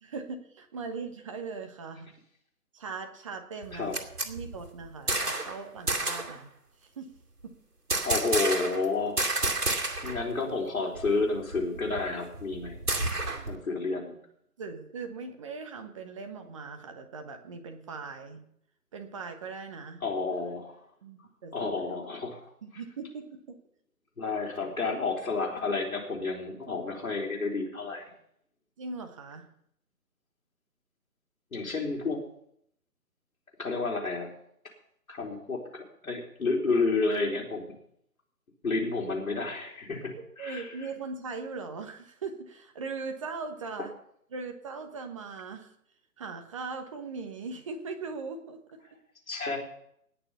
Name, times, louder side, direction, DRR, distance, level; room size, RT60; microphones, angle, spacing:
voice 1, 0.0-2.1 2.7-4.0 4.2-6.5 6.8-7.1 7.4-7.5 13.3-13.5 14.6-18.4 18.9-20.0 21.0-21.7 22.6-23.6 28.8-29.5 40.4-43.9 44.3-45.7 46.2-48.6, right 4 dB, 20° right, 6 dB, 1.2 m, -39 dB
sound 1, 3.6-5.6 5.9-6.4 7.9-8.9 9.2-10.2 10.5-10.6 11.0-13.6, right 2 dB, 80° right, 2.6 m, -30 dB
voice 2, 8.0-9.6 10.0-12.8 13.5-14.2 20.0-20.8 21.5-22.5 24.2-28.0 31.5-32.2 33.6-34.3 35.1-37.6 38.6-40.7 49.3-49.6, left 3 dB, 60° left, 0 dB, 4.2 m, -30 dB
19.0 x 6.8 x 6.9 m, 0.70 s
figure-of-eight pair, 145°, 46 cm